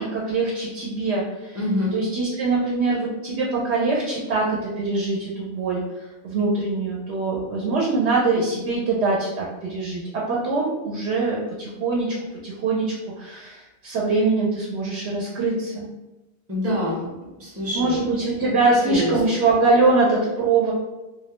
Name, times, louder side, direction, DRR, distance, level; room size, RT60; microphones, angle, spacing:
voice 1, 0.0-1.6 1.9-12.2 12.4-15.9 17.7-20.7, right 3 dB, 80° right, -4 dB, 0.9 m, -23 dB
voice 2, 1.5-1.9 16.5-17.1 17.4-18.0 18.9-19.1, left 1 dB, 20° right, -5 dB, 0.5 m, -25 dB
2.3 x 2.0 x 2.9 m, 1.1 s
omnidirectional pair, 1.1 m